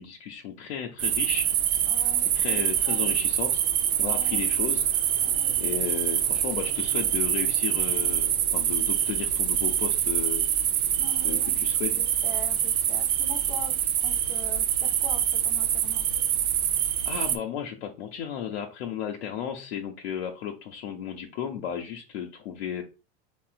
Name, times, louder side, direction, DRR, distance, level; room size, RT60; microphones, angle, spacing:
voice 1, 0.0-1.5 2.3-3.6 4.0-4.8 5.6-10.5 11.2-12.0 17.1-22.8, left 8 dB, 90° left, 2 dB, 0.5 m, -34 dB
sound 1, 1.0-17.4, right 10 dB, 50° right, 0.4 m, -25 dB
voice 2, 1.9-3.0 4.0-4.5 5.2-5.8 11.0-11.5 11.9-16.0, equal, 5° right, 1 dB, 0.5 m, -43 dB
3.6 x 2.0 x 2.4 m, 0.30 s
supercardioid pair, 125°, 31 cm